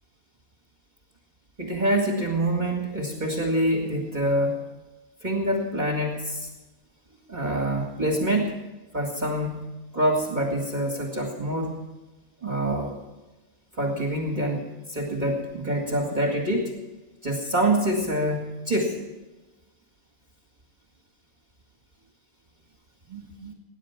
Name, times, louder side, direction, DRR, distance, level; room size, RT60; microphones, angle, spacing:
voice 1, 1.6-4.6 5.2-6.5 7.3-8.5 8.9-9.7 9.9-11.8 12.4-12.9 13.7-16.7 17.2-19.0 23.1-23.5, right 1 dB, 30° right, 1 dB, 2.2 m, -26 dB
19.5 x 10.0 x 5.9 m, 1.1 s
omnidirectional pair, 1.5 m